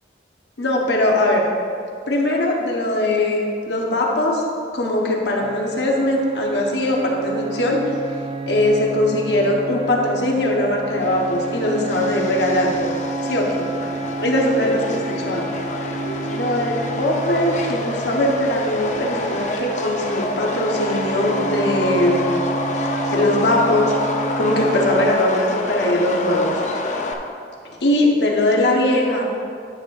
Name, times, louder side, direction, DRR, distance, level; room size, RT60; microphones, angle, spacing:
voice 1, 0.6-1.5 2.1-4.4 4.7-7.8 8.5-12.9 13.2-13.7 14.2-15.5 16.3-22.3 23.1-23.9 24.4-26.5 27.8-29.2, left 1 dB, 75° left, -1 dB, 1.3 m, -20 dB
sound 1, 5.4-25.1, right 4 dB, 30° right, 0.4 m, -30 dB
Subway metro underground, 11.0-27.1, left 2 dB, 40° left, 0.7 m, -28 dB
10.5 x 3.6 x 6.6 m, 2.4 s
head